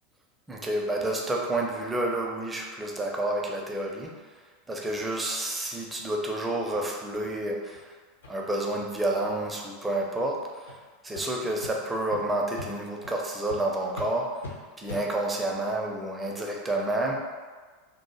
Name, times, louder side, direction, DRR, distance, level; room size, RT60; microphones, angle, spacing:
voice 1, 0.5-4.1 4.7-7.9 8.3-10.7 11.0-14.4 14.8-17.1, right 1 dB, 10° right, -1 dB, 0.5 m, -29 dB
sound 1, 4.7-4.8 5.2-5.3 5.7-5.9 6.2-6.3 6.7-6.8 7.2-7.4 7.7-7.8 8.2-8.3 8.7-8.8 9.2-9.5 10.1-10.2 10.6-10.8 11.1-11.2 11.6-11.7 12.1-12.2 12.6-12.7 13.0-13.2 13.5-13.6 13.9-14.1 14.4-14.5 14.9-15.0, left 3 dB, 70° left, 0.5 m, -42 dB
2.7 x 2.0 x 3.2 m, 1.4 s
figure-of-eight pair, 80°, 0 cm